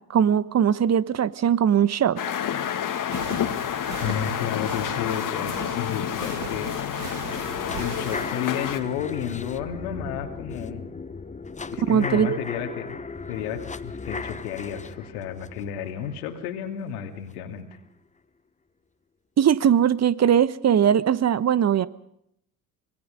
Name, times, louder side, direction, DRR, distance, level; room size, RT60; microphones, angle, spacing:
voice 1, 0.1-2.2 11.8-12.4 19.4-21.9, right 9 dB, 35° right, 16 dB, 1.2 m, -20 dB
sound 1, 2.2-8.8, left 9 dB, 45° left, 2.3 m, -29 dB
sound 2, 3.1-8.2, right 5 dB, 85° right, 2.3 m, -39 dB
voice 2, 4.0-7.1 7.8-10.9 11.7-13.0 13.3-17.7, left 9 dB, 75° left, 5 dB, 2.9 m, -32 dB
sound 3, 7.3-17.3 17.7-17.8, left 4 dB, 15° left, 1.1 m, -37 dB
25.5 x 23.0 x 5.3 m, 0.74 s
hypercardioid pair, 60°, 45 cm